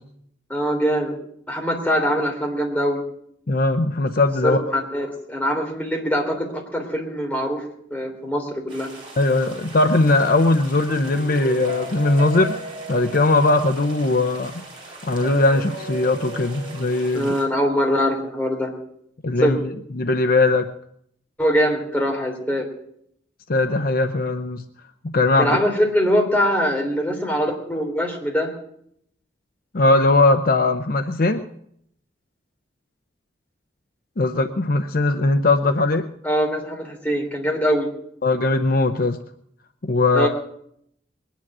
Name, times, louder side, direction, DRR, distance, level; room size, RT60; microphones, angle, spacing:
voice 1, 0.5-1.2 1.5-3.0 4.4-7.6 7.9-8.9 17.1-18.7 19.4-19.5 21.4-22.7 25.4-28.5 36.2-37.9 40.1-40.3, equal, 10° left, 1 dB, 3.1 m, -22 dB
voice 2, 3.5-4.6 9.2-12.6 12.9-14.5 15.0-17.3 19.2-20.7 23.5-24.6 25.0-25.6 29.7-31.4 34.2-36.1 38.2-39.2 39.8-40.3, left 2 dB, 50° left, 8 dB, 0.7 m, -19 dB
sound 1, 8.7-17.5, right 2 dB, 25° right, 5.3 m, -36 dB
21.5 x 10.5 x 6.1 m, 0.70 s
head